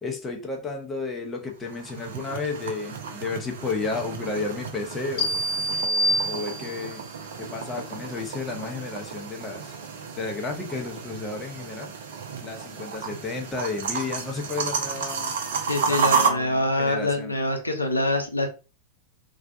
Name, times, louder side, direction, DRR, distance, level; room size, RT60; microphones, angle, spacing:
voice 1, 0.0-5.4 5.8-7.0 7.4-9.7 10.1-11.9 12.4-15.3 15.8-17.3, left 4 dB, 15° left, 0.7 m, -32 dB
sound 1, 1.5-16.3, right 5 dB, 60° right, 0.5 m, -32 dB
sound 2, 5.2-7.0, equal, 40° left, 1.2 m, -26 dB
voice 2, 15.7-18.5, left 1 dB, 85° left, 0.5 m, -25 dB
2.3 x 2.2 x 2.7 m
figure-of-eight pair, 90°, 0 cm